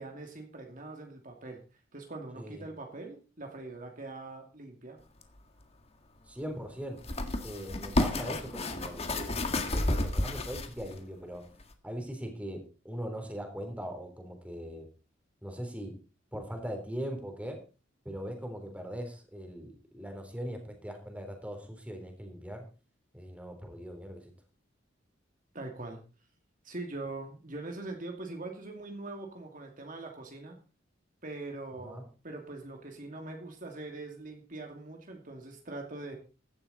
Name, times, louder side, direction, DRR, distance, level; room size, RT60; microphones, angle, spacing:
voice 1, 0.0-1.6 1.9-5.0 25.5-26.0 26.6-30.6 31.2-36.2, right 2 dB, 45° right, 2 dB, 2.6 m, -42 dB
sound 1, 5.2-5.3 7.0-11.0 11.6-11.7, left 1 dB, 30° left, 1.7 m, -31 dB
voice 2, 6.3-7.0 7.4-11.4 11.8-14.9 15.4-15.9 16.3-17.6 18.1-22.6 23.1-24.2 31.8-32.0, equal, 5° right, 4 dB, 3.6 m, -40 dB
15.5 x 12.0 x 4.2 m, 0.34 s
head